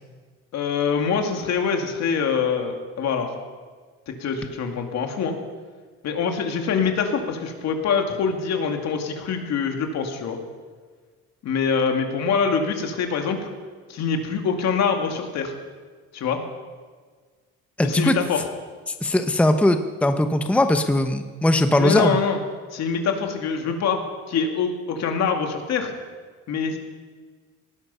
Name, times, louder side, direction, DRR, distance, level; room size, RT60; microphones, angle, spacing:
voice 1, 0.5-3.3 4.1-5.4 6.0-10.4 11.4-13.4 13.9-15.5 16.1-16.4 17.8-18.4 21.8-22.4 22.7-24.0 24.3-25.9 26.5-26.8, left 6 dB, 60° left, 3 dB, 2.4 m, -24 dB
voice 2, 17.8-18.1 18.9-22.2, left 1 dB, 5° left, 7 dB, 0.8 m, -20 dB
18.5 x 11.0 x 5.6 m, 1.5 s
cardioid pair, 95°, 30 cm